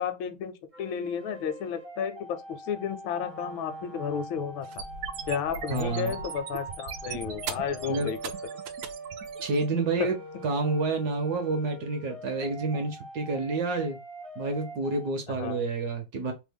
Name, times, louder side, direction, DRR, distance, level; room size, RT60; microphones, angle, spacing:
voice 1, 0.0-4.8 5.3-8.2 10.0-10.1 15.3-15.6, left 7 dB, 85° left, 1.4 m, -32 dB
sound 1, 0.7-15.1, right 1 dB, 30° right, 0.6 m, -43 dB
Wind instrument woodwind instrument, 3.1-11.3, right 3 dB, 25° left, 0.4 m, -50 dB
sound 2, 4.6-9.6, right 7 dB, 85° right, 0.8 m, -39 dB
voice 2, 5.7-6.2 7.9-8.1 9.4-10.2 10.4-14.0 14.4-16.3, right 3 dB, 65° right, 1.1 m, -29 dB
3.3 x 2.1 x 3.4 m
omnidirectional pair, 2.1 m